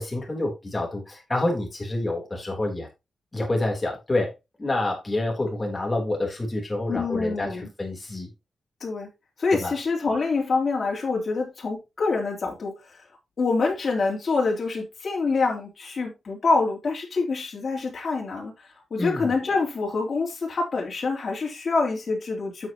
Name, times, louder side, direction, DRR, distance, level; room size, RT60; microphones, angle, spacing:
voice 1, 0.0-2.9 3.3-8.3 9.6-9.7 19.0-19.3, left 2 dB, 20° left, 3.4 m, -28 dB
voice 2, 6.9-7.7 8.8-9.1 9.4-13.0 13.4-22.7, left 4 dB, 45° left, 3.3 m, -26 dB
9.0 x 8.0 x 3.0 m
wide cardioid pair, 150°, 0 cm